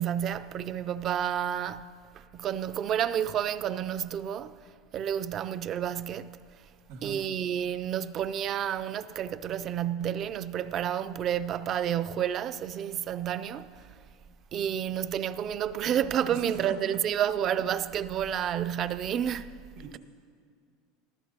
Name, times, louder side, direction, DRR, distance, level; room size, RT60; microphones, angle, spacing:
voice 1, 0.0-1.9 2.3-4.6 4.9-6.4 7.0-13.9 14.5-19.5, right 9 dB, 40° right, 0.4 m, -30 dB
voice 2, 16.3-16.8 19.8-20.0, right 8 dB, 80° right, 1.9 m, -38 dB
19.5 x 14.0 x 2.9 m
supercardioid pair, 115°, 0 cm